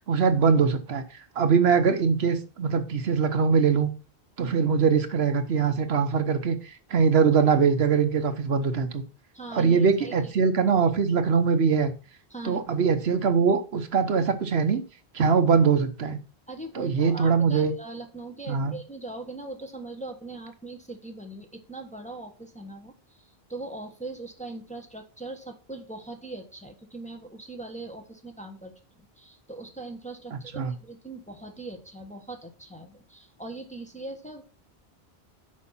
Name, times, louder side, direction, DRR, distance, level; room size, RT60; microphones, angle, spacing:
voice 1, 0.1-1.0 1.4-3.9 4.4-9.0 9.5-11.9 12.4-14.8 15.1-16.2 16.7-17.7 18.5-18.8 30.3-30.7, right 6 dB, 70° right, 8 dB, 1.1 m, -22 dB
voice 2, 9.3-10.3 12.3-12.8 16.5-34.4, right 2 dB, 5° left, 3 dB, 1.1 m, -40 dB
6.5 x 5.2 x 5.6 m, 0.35 s
omnidirectional pair, 1.1 m